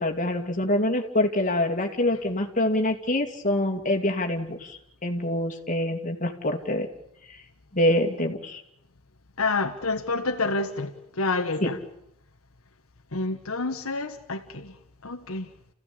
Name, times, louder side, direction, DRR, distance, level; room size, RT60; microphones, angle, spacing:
voice 1, 0.0-4.8 5.0-6.9 7.7-8.6 11.6-11.7, left 1 dB, 35° left, 2.6 m, -25 dB
voice 2, 9.4-11.8 13.1-14.7 15.0-15.5, left 3 dB, 75° left, 1.4 m, -28 dB
29.5 x 16.0 x 8.8 m
head